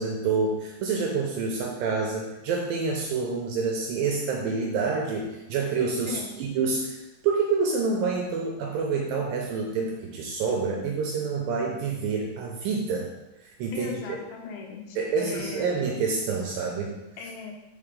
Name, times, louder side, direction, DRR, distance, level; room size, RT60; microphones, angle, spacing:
voice 1, 0.0-13.1 13.4-14.0 15.0-17.0, right 4 dB, 80° right, 0 dB, 2.1 m, -27 dB
voice 2, 6.0-6.4 13.7-15.7 17.2-17.6, left 5 dB, 80° left, 3 dB, 2.6 m, -39 dB
6.6 x 4.4 x 3.7 m, 1.1 s
omnidirectional pair, 4.4 m